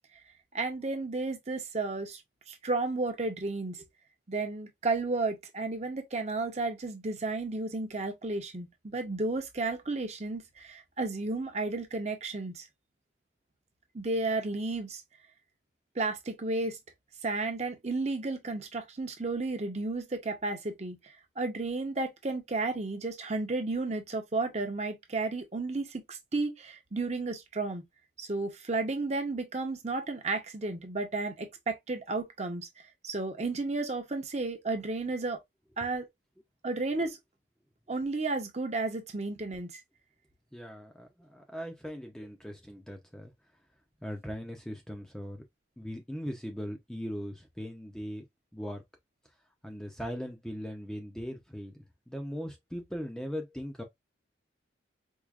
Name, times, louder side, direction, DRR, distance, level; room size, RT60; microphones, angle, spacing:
voice 1, 0.5-2.2 2.5-3.8 4.3-12.7 13.9-15.0 16.0-16.8 17.2-21.0 21.4-27.8 28.2-32.7 33.0-35.4 35.8-36.1 36.6-37.2 37.9-39.7, right 3 dB, 35° right, 0.7 m, -32 dB
voice 2, 40.5-43.3 44.0-45.4 45.8-48.2 48.5-48.8 49.6-51.7 52.1-53.8, equal, 5° left, 0.5 m, -39 dB
4.7 x 2.4 x 2.3 m
head